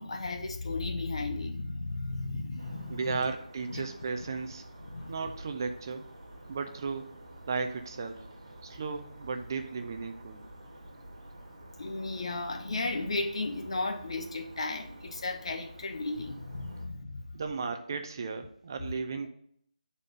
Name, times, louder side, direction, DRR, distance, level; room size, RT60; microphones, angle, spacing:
voice 1, 0.0-3.2 3.7-3.8 4.9-5.1 11.8-17.2, left 2 dB, 45° left, 5 dB, 0.9 m, -34 dB
sound 1, 2.6-16.9, right 1 dB, 45° right, 1.8 m, -49 dB
voice 2, 2.9-4.6 5.1-6.1 6.5-7.1 7.5-8.3 8.6-10.4 17.3-19.3, right 4 dB, 30° right, 6 dB, 0.5 m, -35 dB
8.8 x 4.2 x 5.2 m, 0.67 s
figure-of-eight pair, 165°, 4 cm